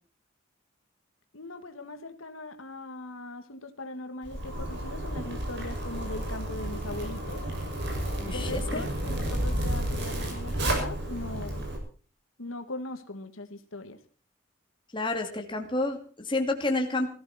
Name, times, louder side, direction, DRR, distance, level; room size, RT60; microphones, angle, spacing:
voice 1, 1.3-7.4 8.3-11.7 12.4-14.0, left 2 dB, 85° left, 7 dB, 2.1 m, -40 dB
Zipper (clothing), 4.2-11.8, right 1 dB, 55° right, 6.3 m, -31 dB
voice 2, 8.2-8.8 14.9-17.1, left 2 dB, 25° left, 4 dB, 2.6 m, -29 dB
18.5 x 15.0 x 4.3 m, 0.39 s
head